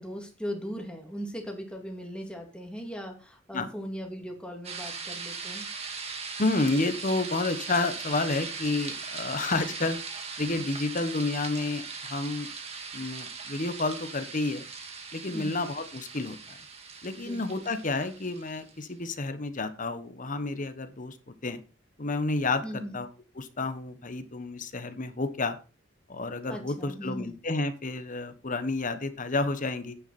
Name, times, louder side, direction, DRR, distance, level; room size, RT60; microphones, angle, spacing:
voice 1, 0.0-5.7 10.6-10.7 15.3-15.7 17.2-17.6 22.6-23.0 26.5-27.4, equal, 5° left, 1 dB, 2.5 m, -38 dB
sound 1, 4.6-18.7, right 5 dB, 30° right, 2.0 m, -39 dB
voice 2, 6.4-10.0 10.4-12.5 12.9-14.6 15.1-16.6 17.0-21.6 22.0-23.1 23.4-25.6 26.1-29.9, left 3 dB, 40° left, 10 dB, 1.3 m, -30 dB
9.7 x 8.9 x 4.3 m, 0.33 s
head